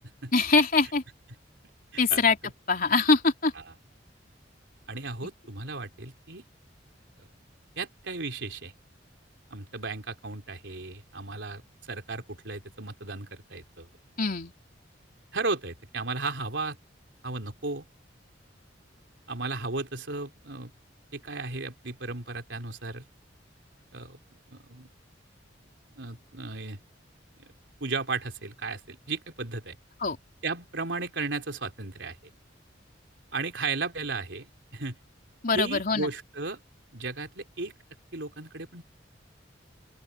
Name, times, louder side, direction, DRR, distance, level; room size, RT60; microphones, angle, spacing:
voice 1, 0.3-1.0 2.0-2.4 2.7-3.5 14.2-14.5 30.0-30.2 35.4-36.1, left 3 dB, 50° left, 3.7 m, -23 dB
voice 2, 4.9-6.4 7.8-8.7 9.5-11.6 11.9-13.9 15.3-16.8 17.2-17.9 19.3-20.7 21.1-23.0 23.9-24.2 24.5-24.9 26.0-26.8 27.4-27.5 27.8-29.8 30.4-32.2 33.3-35.0 35.5-36.6 36.9-37.7 38.1-38.8, right 3 dB, 75° right, 3.8 m, -35 dB
open air
head